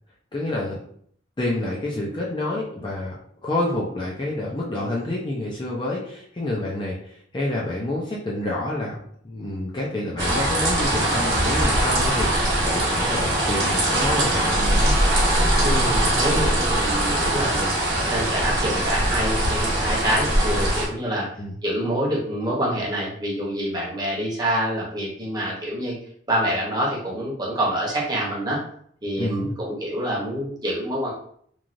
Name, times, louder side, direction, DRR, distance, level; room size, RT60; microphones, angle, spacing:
voice 1, 0.3-0.8 1.4-3.1 3.4-9.0 9.2-14.9 21.4-21.6 29.2-29.6, left 1 dB, 25° left, -4 dB, 0.4 m, -28 dB
sound 1, 10.2-20.9, right 1 dB, 55° right, 1.1 m, -21 dB
voice 2, 15.6-17.7 18.1-21.3 21.6-26.0 26.3-28.6 29.0-31.1, right 1 dB, 20° right, -4 dB, 0.8 m, -26 dB
3.1 x 2.3 x 2.5 m, 0.63 s
head